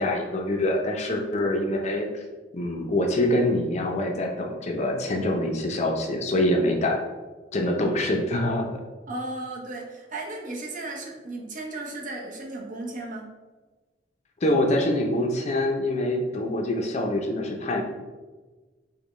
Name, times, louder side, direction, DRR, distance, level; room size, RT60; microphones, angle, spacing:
voice 1, 0.0-2.2 2.5-7.0 7.5-8.7 14.4-17.8, left 1 dB, 40° left, 2 dB, 0.5 m, -25 dB
voice 2, 9.1-13.3, right 2 dB, 45° right, -1 dB, 0.7 m, -35 dB
5.1 x 2.2 x 3.1 m, 1.3 s
head